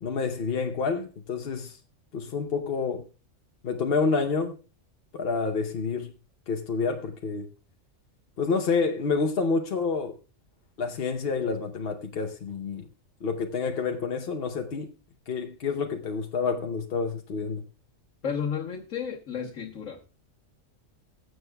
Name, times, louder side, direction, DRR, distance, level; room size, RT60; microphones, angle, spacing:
voice 1, 0.0-1.8 2.1-3.1 3.6-4.6 5.1-6.1 6.5-7.5 8.4-10.1 10.8-12.9 13.2-14.9 15.3-17.6, left 4 dB, 50° left, 0.9 m, -28 dB
voice 2, 18.2-20.1, left 7 dB, 85° left, 1.7 m, -32 dB
20.5 x 7.8 x 2.2 m
omnidirectional pair, 1.3 m